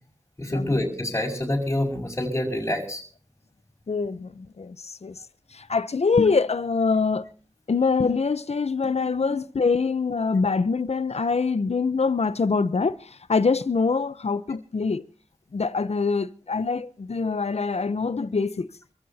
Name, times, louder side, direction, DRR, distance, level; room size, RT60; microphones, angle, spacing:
voice 1, 0.4-3.0 9.1-9.2, left 1 dB, 20° left, 5.1 m, -27 dB
voice 2, 3.9-5.2 5.5-7.3 7.7-15.0 15.5-18.7, left 4 dB, 60° left, 0.8 m, -24 dB
26.0 x 15.5 x 2.9 m
wide cardioid pair, 65°, 12 cm